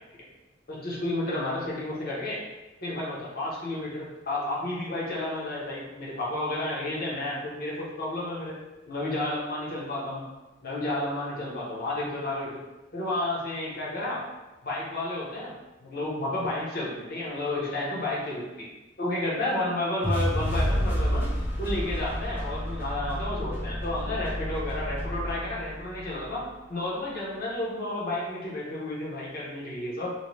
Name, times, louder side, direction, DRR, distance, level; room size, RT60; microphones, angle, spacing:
voice 1, 0.7-2.4 2.8-8.6 8.9-10.2 10.6-12.6 12.9-14.2 14.6-15.5 15.8-18.7 19.0-21.3 21.6-26.4 26.7-30.1, left 1 dB, 55° left, -5 dB, 0.8 m, -31 dB
sound 1, 20.0-26.2, equal, 10° right, 0.5 m, -30 dB
2.6 x 2.1 x 3.1 m, 1.1 s
head